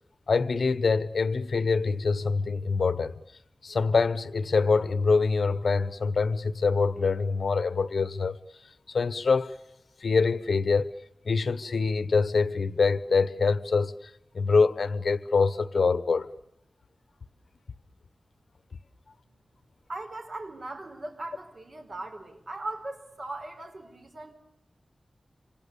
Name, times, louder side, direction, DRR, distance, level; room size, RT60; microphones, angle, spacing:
voice 1, 0.3-3.1 3.6-8.4 8.9-9.5 10.0-10.9 11.3-13.9 14.3-16.3, left 4 dB, 75° left, 1.1 m, -25 dB
voice 2, 19.9-24.3, right 2 dB, 55° right, 4.7 m, -39 dB
26.5 x 26.5 x 6.9 m
wide cardioid pair, 110°, 0 cm